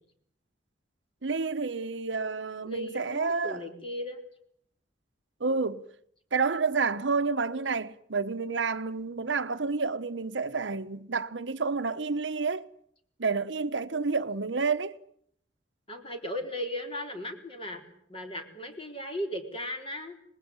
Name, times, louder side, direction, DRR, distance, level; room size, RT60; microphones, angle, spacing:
voice 1, 1.2-3.6 5.4-5.9 6.3-12.7 13.2-14.9, right 4 dB, 90° right, 1.0 m, -29 dB
voice 2, 2.6-4.2 15.9-17.8 18.1-20.2, left 1 dB, 30° left, 4.1 m, -36 dB
25.5 x 20.5 x 9.7 m
head